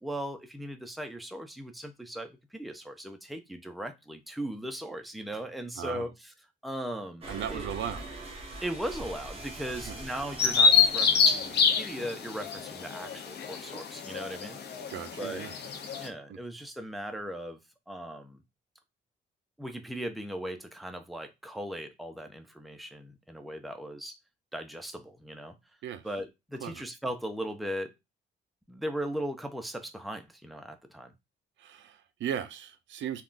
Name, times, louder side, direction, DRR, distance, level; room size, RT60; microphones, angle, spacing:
voice 1, 0.0-6.1 6.6-7.7 8.6-14.6 15.2-15.4 16.0-17.6 17.9-18.4 19.6-24.2 24.5-25.6 26.0-27.9 28.7-31.1, right 1 dB, ahead, 0.5 m, -38 dB
voice 2, 5.8-6.1 7.3-8.1 9.9-10.0 14.9-15.5 25.8-26.1 26.6-26.8 31.6-33.2, right 9 dB, 70° right, 0.5 m, -37 dB
sound 1, 7.2-12.7, right 2 dB, 30° right, 1.0 m, -43 dB
Bird vocalization bird call bird song, 10.4-16.1, left 5 dB, 55° left, 0.6 m, -26 dB
3.5 x 2.3 x 2.5 m
cardioid pair, 90°, 20 cm